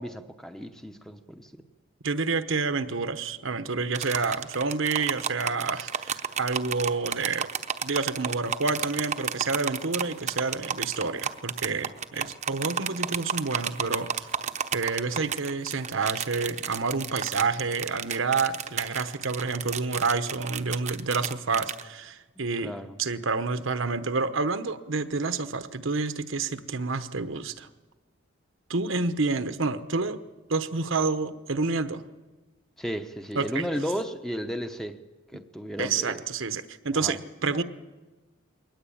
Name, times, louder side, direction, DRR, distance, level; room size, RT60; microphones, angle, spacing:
voice 1, 0.0-1.5 22.6-23.0 32.8-35.0 35.3-36.2 36.9-37.2, equal, ahead, 7 dB, 0.9 m, -34 dB
voice 2, 2.0-7.5 7.8-14.3 14.7-22.7 23.0-27.7 28.7-30.2 30.5-32.0 33.3-33.7 35.8-37.6, right 4 dB, 65° right, 11 dB, 1.1 m, -29 dB
sound 1, 3.9-21.8, right 7 dB, 35° right, 0.9 m, -32 dB
22.0 x 18.5 x 8.7 m, 1.2 s
head